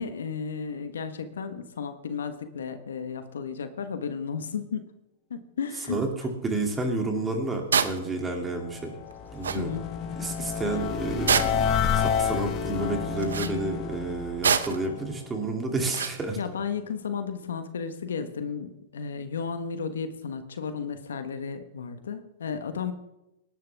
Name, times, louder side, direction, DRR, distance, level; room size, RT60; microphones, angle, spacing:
voice 1, 0.0-4.9 5.3-6.0 9.5-9.9 16.4-22.9, left 6 dB, 85° left, 10 dB, 1.3 m, -33 dB
voice 2, 5.9-8.9 9.3-9.8 10.2-11.7 11.9-16.4, right 2 dB, 15° right, 2 dB, 2.6 m, -30 dB
sound 1, 7.7-8.0 9.1-9.2 9.4-9.6 11.3-11.7 13.2-13.5 14.4-14.9 15.9-16.2, right 7 dB, 90° right, 0.8 m, -24 dB
sound 2, 8.4-15.5, left 7 dB, 35° left, 1.3 m, -30 dB
19.0 x 11.0 x 3.5 m, 0.90 s
hypercardioid pair, 125°, 0 cm